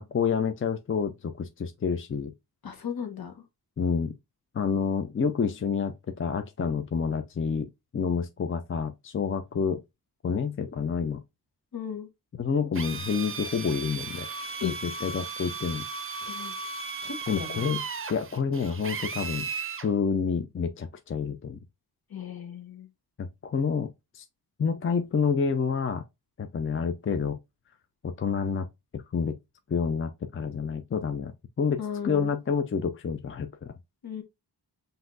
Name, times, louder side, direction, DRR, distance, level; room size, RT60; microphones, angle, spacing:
voice 1, 0.0-2.3 3.8-4.1 4.5-7.7 7.9-9.8 10.2-11.2 12.4-14.3 14.6-15.8 17.3-17.8 18.1-19.5 19.8-21.6 23.2-23.9 24.1-24.2 24.6-26.0 26.4-27.4 28.0-28.7 28.9-29.3 29.7-33.7, left 6 dB, 30° left, 0.5 m, -28 dB
voice 2, 2.6-3.4 11.7-12.1 14.6-14.8 16.2-16.5 17.0-17.7 22.1-22.9 31.8-32.3 34.0-34.2, left 8 dB, 60° left, 1.2 m, -35 dB
Drill, 12.7-19.9, right 5 dB, 30° right, 0.6 m, -36 dB
5.7 x 2.7 x 2.6 m
cardioid pair, 70°, 40 cm